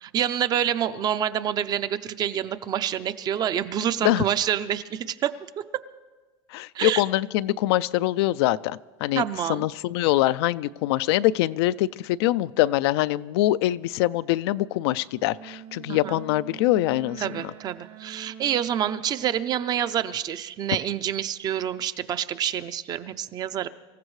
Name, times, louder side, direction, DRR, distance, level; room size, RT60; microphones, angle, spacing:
voice 1, 0.0-5.3 6.7-7.0 9.2-9.7 15.9-16.2 17.2-23.7, right 10 dB, 30° right, 13 dB, 0.5 m, -27 dB
voice 2, 6.5-9.2 9.5-17.5, left 16 dB, 75° left, 16 dB, 0.4 m, -24 dB
Wind instrument woodwind instrument, 15.3-19.5, right 9 dB, 65° right, 1.8 m, -44 dB
25.5 x 15.0 x 3.2 m, 1.3 s
supercardioid pair, 145°, 14 cm